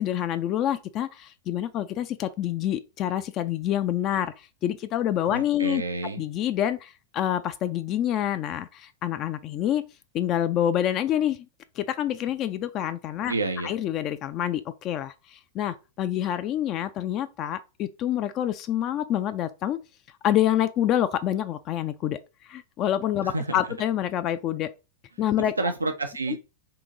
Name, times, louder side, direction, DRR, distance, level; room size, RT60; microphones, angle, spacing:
voice 1, 0.0-5.8 6.2-9.8 10.1-11.5 11.8-13.3 13.6-19.8 20.2-24.7 25.2-25.5, left 11 dB, 35° left, 0.3 m, -27 dB
voice 2, 5.3-6.2 13.3-13.8 23.2-23.6 25.6-26.4, right 3 dB, 85° right, 0.4 m, -29 dB
3.8 x 2.8 x 3.8 m
figure-of-eight pair, 95°, 0 cm